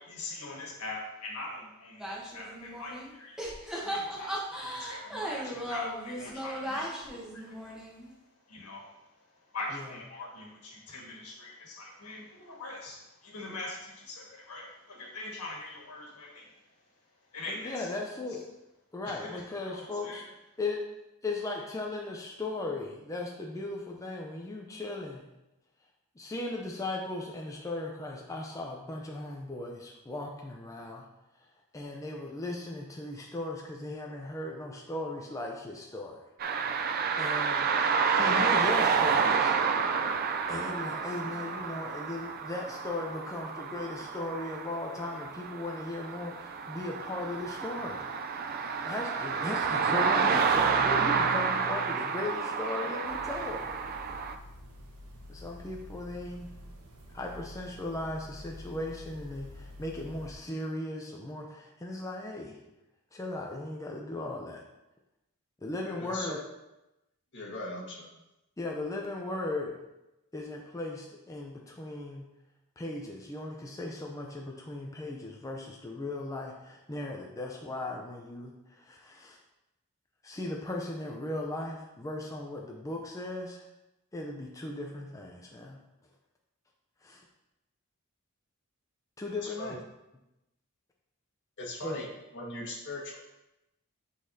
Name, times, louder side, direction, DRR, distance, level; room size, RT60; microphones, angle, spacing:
voice 1, 0.0-3.4 3.8-16.9 17.3-17.9 19.0-20.3, left 2 dB, 85° left, -2 dB, 1.6 m, -43 dB
sound 1, 2.0-3.1 3.4-8.1, equal, 5° right, 0.9 m, -37 dB
voice 2, 17.5-18.5 18.9-20.2 20.6-20.9 21.2-25.3 26.2-31.0 31.4-31.5 31.7-36.2 37.2-37.7 38.1-39.6 40.5-48.1 48.8-53.7 55.3-56.5 57.1-62.6 63.1-64.6 65.6-66.4 68.6-69.8 70.3-72.2 72.8-79.4 80.2-83.7 84.1-85.8 87.0-87.3 89.2-89.8 91.8-92.0, left 2 dB, 15° left, 0 dB, 0.5 m, -37 dB
sound 2, 36.4-54.4, right 5 dB, 40° right, 0.3 m, -29 dB
sound 3, 53.0-60.3, left 1 dB, 90° right, 1.1 m, -48 dB
voice 3, 65.8-66.3 67.3-68.1 89.4-89.7 91.6-92.1 92.3-93.2, left 1 dB, 55° left, -2 dB, 1.5 m, -39 dB
9.1 x 4.0 x 2.7 m, 0.96 s
head